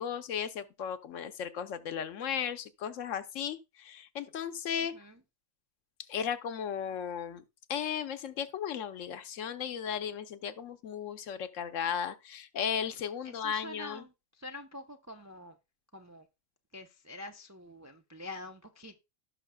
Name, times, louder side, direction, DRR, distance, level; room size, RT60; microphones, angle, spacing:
voice 1, 0.0-4.9 6.1-7.4 7.7-14.0, left 8 dB, 70° left, 1.1 m, -35 dB
voice 2, 4.8-5.2 13.2-15.5 15.9-16.3 16.7-19.0, left 1 dB, 25° right, 0.3 m, -46 dB
17.0 x 5.7 x 2.2 m
omnidirectional pair, 1.4 m